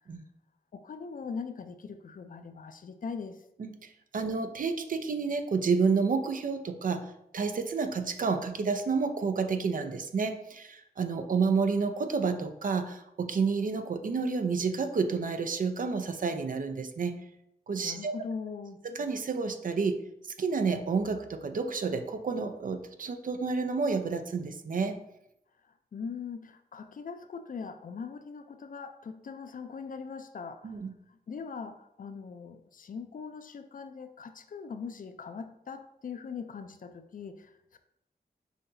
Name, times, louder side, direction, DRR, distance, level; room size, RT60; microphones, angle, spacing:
voice 1, 0.7-3.4 17.8-18.8 25.6-30.8 31.1-37.8, left 5 dB, 55° left, 9 dB, 0.4 m, -41 dB
voice 2, 4.1-7.0 7.3-17.2 17.7-18.1 18.8-20.0 20.4-25.0 30.6-30.9, right 5 dB, 55° right, 8 dB, 0.5 m, -30 dB
5.7 x 2.8 x 2.6 m, 0.80 s
cardioid pair, 50°, 17 cm